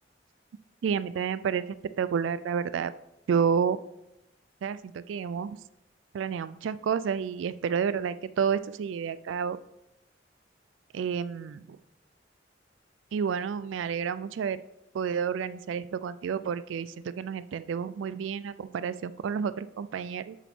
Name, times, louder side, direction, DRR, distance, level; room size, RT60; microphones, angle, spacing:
voice 1, 0.8-1.6 2.0-2.9 3.3-3.8 4.6-5.6 6.1-9.6 10.9-11.8 13.1-14.6 14.9-20.4, right 7 dB, 85° right, 15 dB, 0.3 m, -30 dB
7.9 x 7.4 x 3.6 m, 0.89 s
head